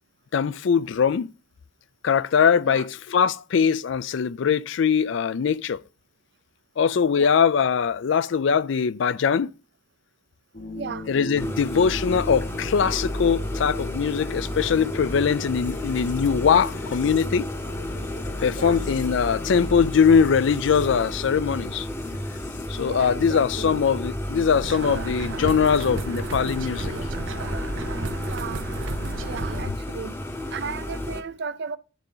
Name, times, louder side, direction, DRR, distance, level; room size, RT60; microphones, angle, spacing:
voice 1, 0.3-1.3 2.0-5.8 6.8-9.5 11.1-17.5 18.4-21.9 22.7-26.9, left 6 dB, 65° left, 0.4 m, -22 dB
sound 1, 10.5-22.8, left 2 dB, 40° left, 0.8 m, -40 dB
voice 2, 10.8-11.1 15.2-15.4 18.5-18.8 22.8-23.8 28.3-28.7 29.2-30.2 30.5-31.8, right 6 dB, 55° right, 0.5 m, -35 dB
sound 2, 11.4-31.2, left 1 dB, 15° left, 0.8 m, -32 dB
sound 3, 24.6-29.6, right 2 dB, 80° right, 0.9 m, -32 dB
11.5 x 3.9 x 5.5 m
head